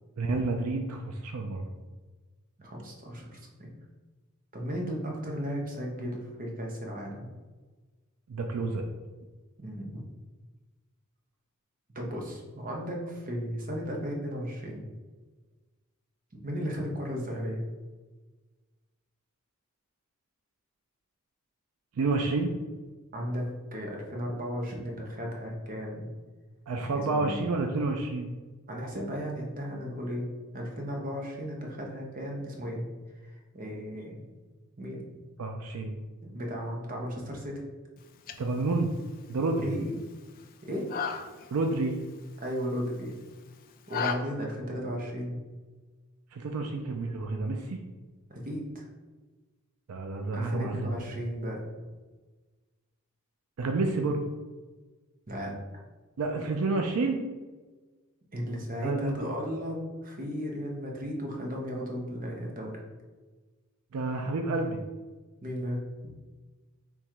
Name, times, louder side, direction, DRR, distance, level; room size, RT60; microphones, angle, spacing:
voice 1, 0.2-1.7 8.3-8.9 22.0-22.5 26.7-28.3 35.4-35.9 38.4-38.9 39.3-39.7 41.5-42.0 46.3-47.8 49.9-50.9 53.6-54.2 56.2-57.2 58.8-59.1 63.9-64.8, right 3 dB, 80° right, 4 dB, 0.4 m, -29 dB
voice 2, 2.6-3.7 4.5-7.3 9.6-10.0 11.9-14.8 16.4-17.6 23.1-26.1 26.9-27.4 28.7-30.3 30.5-32.9 33.2-34.2 34.8-35.1 36.2-37.6 39.6-39.9 40.6-40.9 42.4-43.2 43.9-45.4 48.3-48.9 50.3-51.6 55.3-55.5 58.3-62.7 65.4-65.8, equal, 40° right, -1 dB, 0.8 m, -35 dB
sound 1, 38.0-44.1, left 7 dB, 40° left, 0.3 m, -39 dB
3.6 x 3.0 x 4.5 m, 1.3 s
head